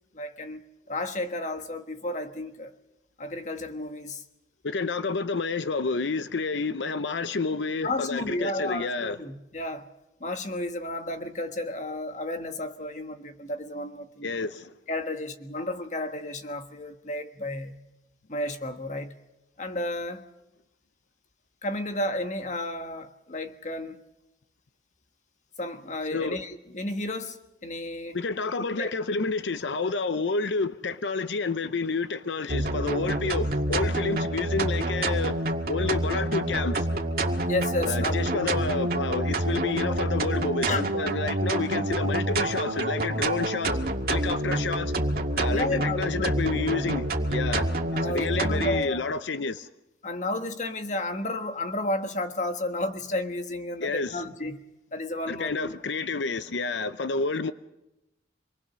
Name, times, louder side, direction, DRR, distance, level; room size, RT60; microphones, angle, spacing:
voice 1, 0.1-0.6 0.9-2.7 3.2-4.2 7.8-9.9 10.2-14.3 14.9-17.8 18.3-19.1 19.6-20.3 21.6-24.0 25.6-28.2 28.8-28.9 37.5-38.6 40.7-40.8 45.5-46.3 47.7-49.1 50.0-54.6 54.9-55.7, left 1 dB, 40° left, 1.5 m, -32 dB
voice 2, 4.6-9.2 14.2-14.7 26.1-26.4 28.1-36.9 37.8-44.9 45.4-47.7 48.1-49.7 53.8-54.2 55.3-57.5, left 4 dB, 85° left, 0.7 m, -29 dB
sound 1, 32.5-48.8, right 1 dB, 55° right, 2.1 m, -27 dB
27.0 x 20.0 x 6.3 m
head